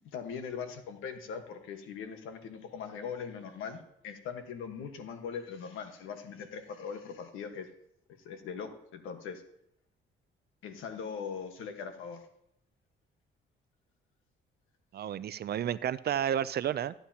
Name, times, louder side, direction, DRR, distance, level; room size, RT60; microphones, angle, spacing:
voice 1, 0.0-7.7 8.2-9.4 10.6-12.2, left 6 dB, 85° left, 6 dB, 1.4 m, -40 dB
voice 2, 14.9-16.9, right 10 dB, 55° right, 16 dB, 0.5 m, -31 dB
14.5 x 9.9 x 2.9 m, 0.77 s
cardioid pair, 90°, 20 cm